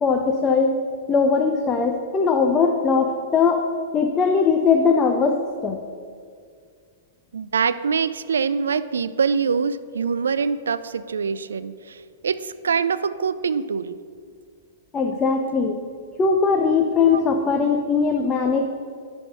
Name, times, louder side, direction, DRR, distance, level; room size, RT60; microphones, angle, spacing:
voice 1, 0.0-0.8 1.1-3.6 3.9-5.8 14.9-15.8 16.2-18.7, left 5 dB, 20° left, 3 dB, 0.5 m, -20 dB
voice 2, 7.3-14.0 17.1-17.2, right 6 dB, 65° right, 15 dB, 0.3 m, -24 dB
10.5 x 3.5 x 6.5 m, 2.2 s
figure-of-eight pair, 105°, 0 cm